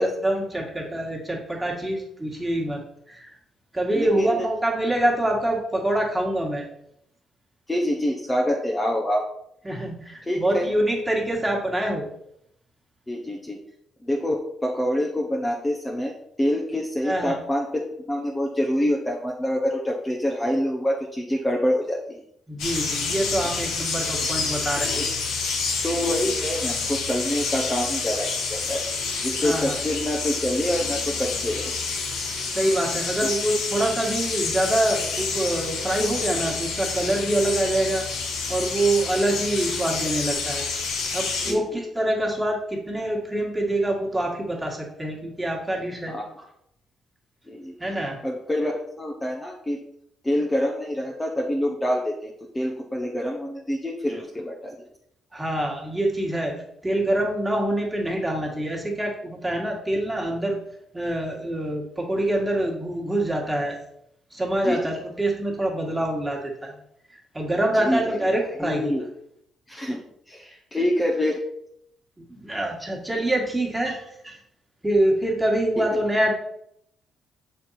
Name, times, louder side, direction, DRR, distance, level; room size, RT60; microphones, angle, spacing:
voice 1, 0.0-2.8 3.1-3.3 3.7-6.7 9.7-12.1 17.0-17.4 22.5-25.0 29.4-29.7 32.5-38.1 38.5-40.6 41.1-46.5 47.8-48.2 55.3-56.5 56.8-60.6 60.9-63.8 64.3-66.8 67.1-68.9 72.3-74.4 74.8-76.3, right 1 dB, 10° right, -1 dB, 1.8 m, -25 dB
voice 2, 3.9-4.5 7.7-9.2 10.2-10.7 13.1-13.6 14.0-22.2 23.4-23.6 24.8-25.1 25.8-28.8 29.2-31.7 41.4-41.8 46.1-46.3 47.5-47.7 48.2-48.7 49.0-49.8 50.2-54.8 64.6-64.9 67.8-68.2 68.6-69.0 69.7-71.4, left 1 dB, 15° left, -1 dB, 0.9 m, -26 dB
sound 1, 22.6-41.5, left 4 dB, 85° left, 1.3 m, -28 dB
6.6 x 4.5 x 4.2 m, 0.75 s
cardioid pair, 90°, 0 cm